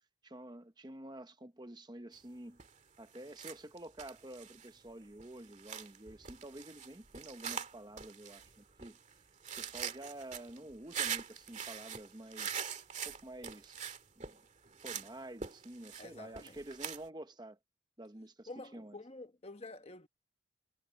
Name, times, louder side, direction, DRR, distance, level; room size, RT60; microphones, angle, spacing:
voice 1, 0.2-2.6 3.0-9.2 9.6-12.6 13.1-13.8 14.2-14.4 14.8-17.6 18.0-19.0, right 1 dB, 20° right, 0.9 m, -49 dB
sound 1, 2.6-2.8 3.1-17.1, right 7 dB, 35° right, 2.2 m, -43 dB
voice 2, 16.0-16.6 18.5-20.1, left 2 dB, 30° left, 1.3 m, -49 dB
head